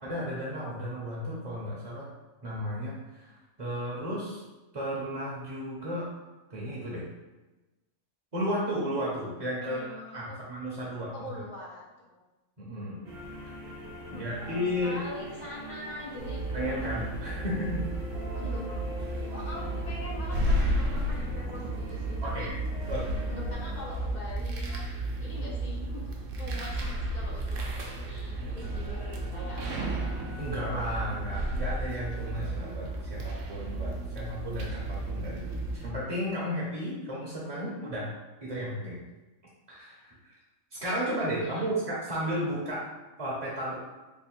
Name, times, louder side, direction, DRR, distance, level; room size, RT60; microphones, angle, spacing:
voice 1, 0.0-2.1 2.4-4.4 4.7-6.1 6.5-7.1 8.3-9.8 10.1-11.3 12.6-13.0 14.1-15.0 16.5-17.9 22.2-22.6 22.8-23.1 30.4-38.1 38.4-39.0 39.7-40.3 40.8-42.9 43.2-43.7, equal, 35° right, -6 dB, 0.6 m, -33 dB
voice 2, 9.6-10.4 11.1-12.2 14.1-16.4 18.3-22.5 23.3-24.8 25.2-27.6 27.9-30.0 41.4-41.7, left 2 dB, 60° left, -4 dB, 0.5 m, -43 dB
sound 1, 13.0-23.8, right 1 dB, 55° right, 0.9 m, -42 dB
sound 2, 16.2-35.9, right 1 dB, 80° right, 1.0 m, -33 dB
Wind instrument woodwind instrument, 28.6-32.9, left 2 dB, 90° left, 1.0 m, -53 dB
3.4 x 2.1 x 4.3 m, 1.1 s
omnidirectional pair, 1.3 m